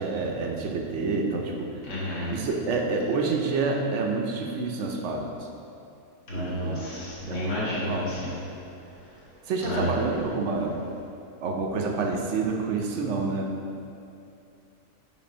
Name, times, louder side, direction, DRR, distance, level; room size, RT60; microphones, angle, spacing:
voice 1, 0.0-1.7 2.3-5.5 6.3-6.9 7.3-8.1 9.5-10.8 11.4-13.5, right 3 dB, 65° right, 1 dB, 0.8 m, -28 dB
voice 2, 1.9-2.3 6.3-8.3 9.6-9.8, left 1 dB, 80° left, -8 dB, 2.1 m, -31 dB
5.9 x 3.8 x 5.0 m, 2.6 s
omnidirectional pair, 1.6 m